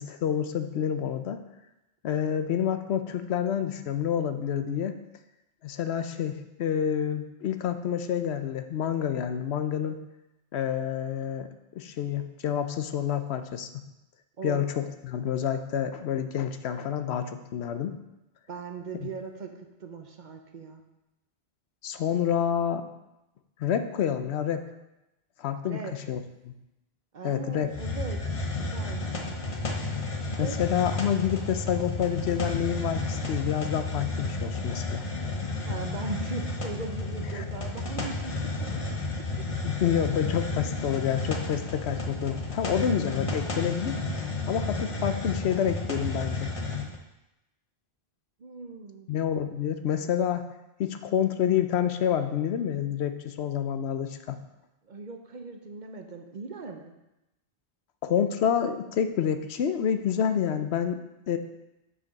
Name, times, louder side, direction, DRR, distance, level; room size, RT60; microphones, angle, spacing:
voice 1, 0.0-1.4 2.0-5.0 5.6-10.0 10.5-13.7 14.4-18.0 19.0-19.1 21.8-22.8 23.6-24.7 25.4-26.5 27.2-27.7 30.4-35.0 37.3-37.4 39.6-44.0 44.5-46.5 49.1-50.5 50.8-54.4 58.0-61.0 61.3-61.4, left 8 dB, 85° left, 9 dB, 0.9 m, -28 dB
voice 2, 18.5-19.5 19.8-20.8 25.6-25.9 27.1-29.0 30.4-30.6 35.6-38.8 39.2-39.3 48.4-49.1 54.8-56.9, right 4 dB, 50° right, 5 dB, 0.9 m, -39 dB
Hiss, 27.7-47.0, left 3 dB, 35° left, 0.9 m, -32 dB
6.8 x 5.9 x 5.2 m, 0.94 s
omnidirectional pair, 1.1 m